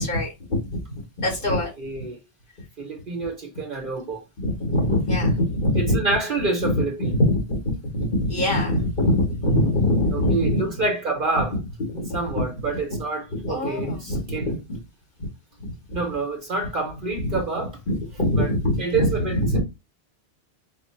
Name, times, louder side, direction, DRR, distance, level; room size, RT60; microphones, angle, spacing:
voice 1, 0.0-1.7 4.4-6.0 6.6-10.7 11.9-12.2 13.3-14.8 15.6-15.7 17.9-19.6, left 1 dB, 50° left, 1.8 m, -23 dB
voice 2, 1.4-2.2 2.8-4.2 5.7-7.2 10.1-11.6 12.1-14.5 15.9-17.8 18.4-18.5 18.8-19.6, right 3 dB, 55° right, 0.9 m, -28 dB
4.5 x 2.0 x 4.2 m
omnidirectional pair, 1.1 m